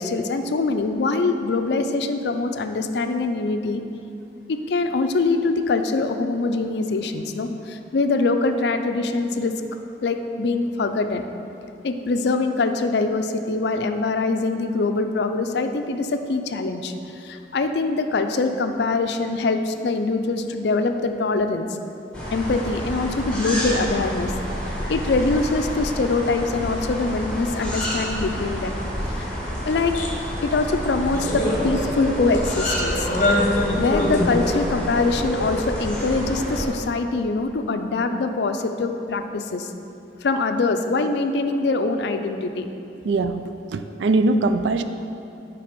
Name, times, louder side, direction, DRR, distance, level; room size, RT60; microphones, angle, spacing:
voice 1, 0.0-3.8 4.5-9.5 10.0-11.2 11.8-21.7 22.3-24.3 24.9-28.8 29.2-29.3 29.6-29.9 30.4-33.1 33.8-39.7 40.2-42.7, left 3 dB, 65° left, 7 dB, 0.4 m, -23 dB
sound 1, 22.1-36.7, equal, 5° left, 1.3 m, -28 dB
sound 2, 29.9-30.1 30.5-30.6 31.1-32.0 32.3-32.6 33.0-34.5, left 2 dB, 45° left, 0.8 m, -24 dB
voice 2, 43.0-44.8, right 2 dB, 80° right, 9 dB, 0.4 m, -22 dB
8.7 x 3.4 x 5.2 m, 2.7 s
head